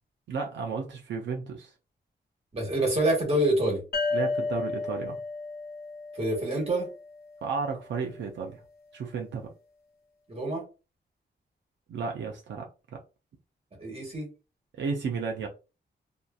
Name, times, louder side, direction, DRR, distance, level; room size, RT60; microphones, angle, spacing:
voice 1, 0.3-1.7 4.1-5.2 7.4-8.6 8.9-9.5 11.9-12.7 12.9-13.0 14.7-15.5, right 5 dB, 85° right, 1 dB, 0.5 m, -33 dB
voice 2, 2.5-3.8 6.1-6.9 10.3-10.6 13.8-14.3, right 1 dB, 35° right, 0 dB, 1.4 m, -26 dB
sound 1, 3.9-7.4, left 3 dB, 60° left, 0.6 m, -33 dB
2.8 x 2.5 x 2.2 m, 0.31 s
wide cardioid pair, 120°, 18 cm